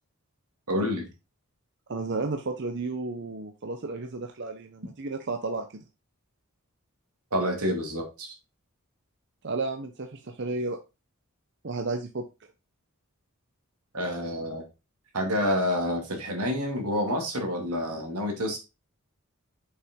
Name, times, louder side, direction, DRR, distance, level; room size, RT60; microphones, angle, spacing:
voice 1, 0.7-1.1 7.3-8.3 13.9-14.6 15.1-18.6, equal, 90° right, 3 dB, 2.3 m, -28 dB
voice 2, 1.9-5.7 9.4-10.8 11.6-12.2, right 3 dB, 50° right, 5 dB, 0.7 m, -32 dB
6.6 x 5.6 x 3.7 m, 0.27 s
head